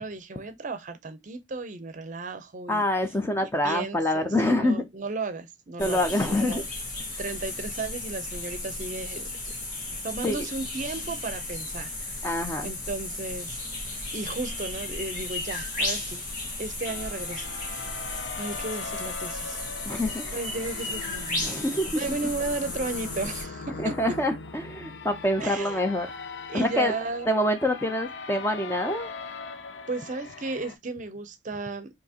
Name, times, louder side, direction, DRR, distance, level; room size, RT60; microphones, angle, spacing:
voice 1, 0.0-2.8 3.4-6.7 7.2-9.5 10.0-12.4 12.6-13.6 14.1-16.2 16.6-17.6 18.4-19.7 19.9-20.0 20.3-21.5 21.9-24.2 25.4-25.8 26.5-27.3 29.9-31.9, right 3 dB, 45° right, 0.6 m, -34 dB
voice 2, 2.7-4.8 5.8-6.6 10.2-10.5 12.2-12.7 19.9-20.2 21.4-22.0 23.8-26.1 26.5-26.9 27.3-29.1, left 1 dB, 15° left, 0.6 m, -26 dB
sound 1, 5.8-23.4, left 2 dB, 45° left, 1.6 m, -34 dB
sound 2, 16.9-30.8, left 4 dB, 70° left, 0.5 m, -40 dB
4.4 x 2.9 x 2.8 m
head